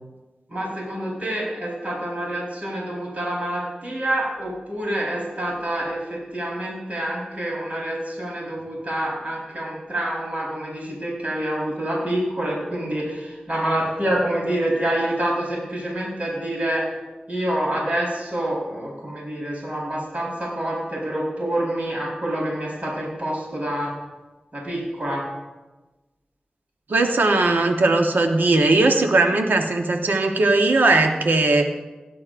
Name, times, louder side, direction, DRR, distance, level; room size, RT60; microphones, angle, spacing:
voice 1, 0.5-16.8 17.3-23.9 24.5-25.2, right 1 dB, 45° right, -6 dB, 4.1 m, -27 dB
voice 2, 26.9-31.7, right 2 dB, 80° right, 4 dB, 1.0 m, -18 dB
17.0 x 10.5 x 2.5 m, 1.2 s
wide cardioid pair, 55°, 3 cm